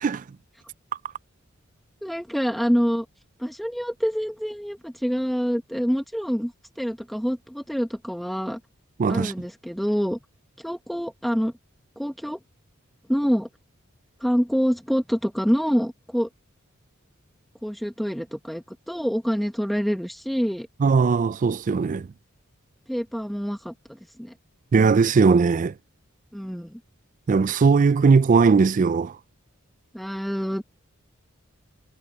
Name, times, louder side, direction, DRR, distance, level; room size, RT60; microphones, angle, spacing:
voice 1, 2.0-3.1 3.4-8.6 9.1-10.2 10.6-11.5 12.0-12.4 13.1-13.5 14.2-16.3 17.6-20.7 22.9-24.3 26.3-26.8 29.9-30.6, equal, ahead, 0.8 m, -26 dB
voice 2, 9.0-9.3 20.8-22.1 24.7-25.7 27.3-29.2, right 5 dB, 35° right, 0.3 m, -19 dB
head